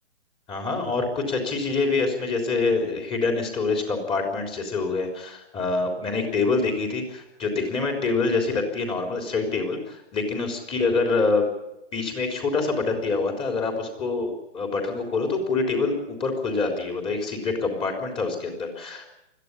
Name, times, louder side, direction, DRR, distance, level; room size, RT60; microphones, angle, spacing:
voice 1, 0.5-11.5 11.9-19.1, left 3 dB, 15° left, 4 dB, 3.9 m, -26 dB
21.5 x 14.5 x 10.0 m, 0.89 s
hypercardioid pair, 150°, 36 cm